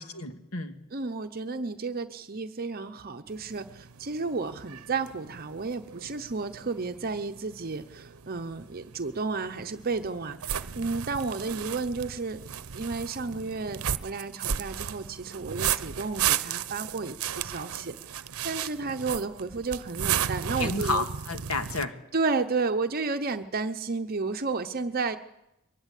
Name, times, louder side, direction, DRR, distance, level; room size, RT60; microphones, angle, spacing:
voice 1, 0.0-0.8 20.6-22.0, left 3 dB, 80° left, 7 dB, 1.8 m, -31 dB
voice 2, 0.9-12.4 12.7-21.0 22.1-25.2, right 4 dB, 45° right, 7 dB, 0.7 m, -32 dB
sound 1, 3.3-21.8, right 9 dB, 80° right, 0.7 m, -35 dB
23.0 x 19.5 x 8.3 m, 0.92 s
head